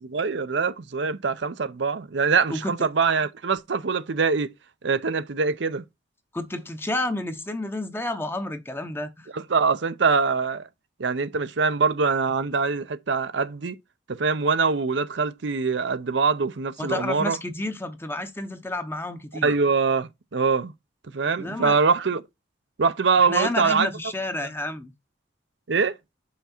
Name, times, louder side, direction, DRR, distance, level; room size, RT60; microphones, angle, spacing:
voice 1, 0.0-4.5 4.8-5.8 9.3-10.7 11.0-13.8 14.1-17.4 19.4-20.7 21.1-22.2 22.8-23.9 25.7-26.0, right 5 dB, 70° right, 0.6 m, -23 dB
voice 2, 6.3-9.3 16.8-19.5 21.4-21.8 23.2-24.9, left 1 dB, 10° left, 0.8 m, -30 dB
6.0 x 5.8 x 4.3 m
head